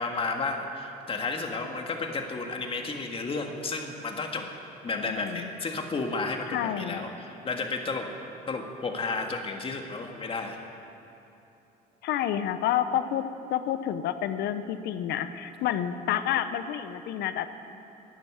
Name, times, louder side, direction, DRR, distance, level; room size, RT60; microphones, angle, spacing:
voice 1, 0.0-4.5 4.8-8.1 8.5-10.6, left 3 dB, 35° left, 3 dB, 1.7 m, -32 dB
voice 2, 5.0-5.5 6.5-7.0 12.0-13.2 13.5-17.5, left 10 dB, 75° left, 11 dB, 0.8 m, -29 dB
12.0 x 11.0 x 9.4 m, 2.9 s
cardioid pair, 110°, 17 cm